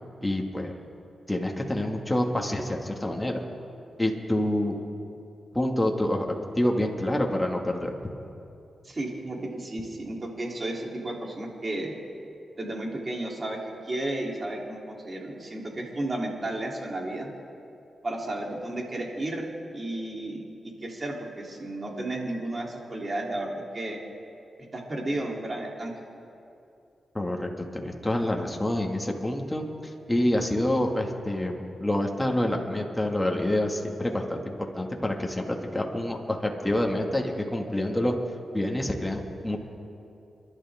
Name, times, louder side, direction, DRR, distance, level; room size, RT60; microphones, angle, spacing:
voice 1, 0.2-0.7 1.3-3.4 4.0-4.7 5.5-6.3 6.5-7.9 27.1-38.1 38.5-39.6, left 1 dB, 10° left, 1 dB, 2.1 m, -27 dB
voice 2, 8.8-12.0 12.6-13.6 13.9-17.3 18.0-19.5 19.7-24.0 24.7-25.9, right 1 dB, 40° right, -1 dB, 3.4 m, -33 dB
29.0 x 12.0 x 3.7 m, 2.7 s
cardioid pair, 65°, 0 cm